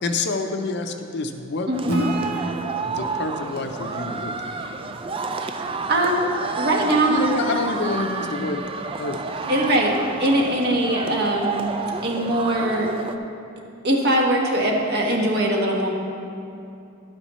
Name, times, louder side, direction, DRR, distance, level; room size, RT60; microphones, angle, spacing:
voice 1, 0.0-2.1 2.8-4.6 6.8-9.5, left 3 dB, 55° left, 5 dB, 0.6 m, -28 dB
sound 1, 1.7-13.2, right 4 dB, 25° right, 0.4 m, -30 dB
voice 2, 1.7-2.0 5.4-5.6 5.9-7.2 9.5-11.7 12.0-12.9 13.8-15.9, right 1 dB, 50° right, -1 dB, 1.3 m, -21 dB
Acoustic guitar / Strum, 1.9-5.3, right 1 dB, 80° right, 0.8 m, -33 dB
11.5 x 9.7 x 3.1 m, 2.6 s
head